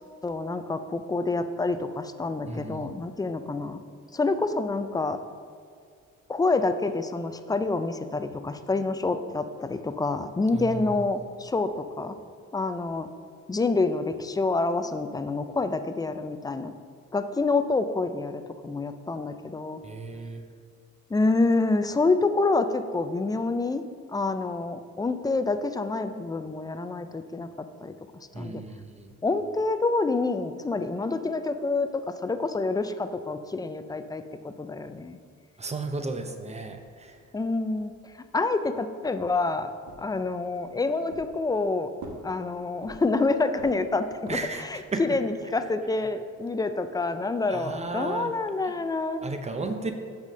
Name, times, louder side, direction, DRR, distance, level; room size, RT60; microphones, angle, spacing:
voice 1, 0.2-3.8 4.1-5.2 6.3-12.2 12.5-13.1 13.5-16.7 17.1-19.8 21.1-23.8 24.1-27.5 27.8-27.9 28.4-28.6 29.2-35.2 37.3-37.9 38.3-39.7 40.0-41.9 42.2-49.2, left 3 dB, 15° left, 10 dB, 0.3 m, -27 dB
voice 2, 2.5-3.0 10.5-10.8 19.8-20.4 28.3-29.1 35.6-37.2 44.3-45.2 47.5-48.4 48.6-48.8 49.2-49.9, right 3 dB, 20° right, 6 dB, 0.7 m, -34 dB
sound 1, 39.9-40.7 41.1-41.7 42.0-43.2 43.6-44.7, right 3 dB, 80° right, 1.2 m, -45 dB
6.0 x 4.2 x 6.4 m, 2.1 s
cardioid pair, 90°, 30 cm